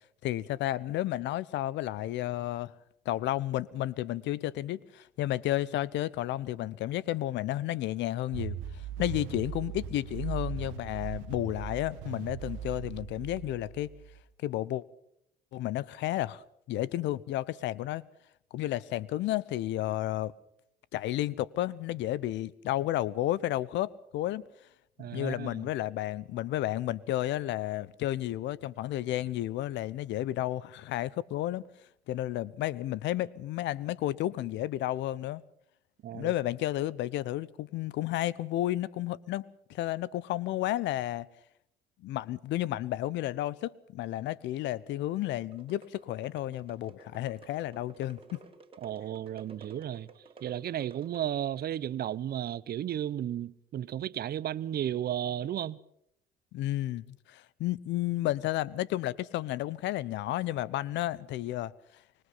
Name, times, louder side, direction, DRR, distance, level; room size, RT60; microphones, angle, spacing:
voice 1, 0.2-2.7 3.0-13.9 14.4-14.8 15.5-18.0 18.5-20.3 20.9-24.4 25.0-31.6 32.1-35.4 36.1-39.4 39.7-41.3 42.0-48.4 56.5-61.7, left 14 dB, 65° left, 0.9 m, -32 dB
sound 1, 8.3-14.2, right 10 dB, 75° right, 1.7 m, -39 dB
voice 2, 25.0-25.7 36.0-36.3 48.8-50.1 50.4-55.8, right 11 dB, 50° right, 0.9 m, -34 dB
sound 2, 45.5-51.6, right 4 dB, 25° right, 3.6 m, -54 dB
25.5 x 21.0 x 5.7 m
supercardioid pair, 70°, 20 cm